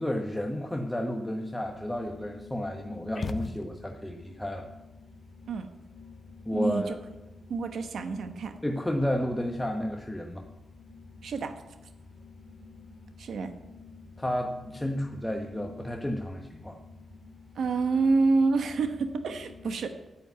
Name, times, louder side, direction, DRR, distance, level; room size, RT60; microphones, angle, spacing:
voice 1, 0.0-4.7 6.4-7.0 8.6-10.4 14.2-16.8, equal, 10° left, 3 dB, 1.1 m, -32 dB
sound 1, 1.7-19.7, left 4 dB, 65° left, 1.9 m, -50 dB
sound 2, 3.1-4.2, left 4 dB, 45° left, 0.8 m, -37 dB
voice 2, 6.5-7.0 7.5-8.5 11.2-11.6 13.2-13.5 17.5-19.9, right 4 dB, 80° right, 7 dB, 1.0 m, -27 dB
8.8 x 8.5 x 9.4 m, 1.0 s
cardioid pair, 75°, 0 cm